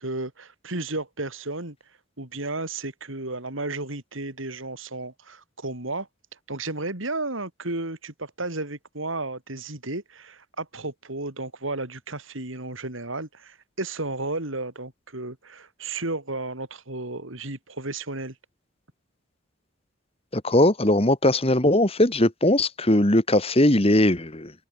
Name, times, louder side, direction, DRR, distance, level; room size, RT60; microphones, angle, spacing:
voice 1, 0.0-1.8 2.2-6.1 6.5-18.4, right 2 dB, 75° right, 4.1 m, -33 dB
voice 2, 20.3-24.5, left 1 dB, 30° left, 2.0 m, -20 dB
head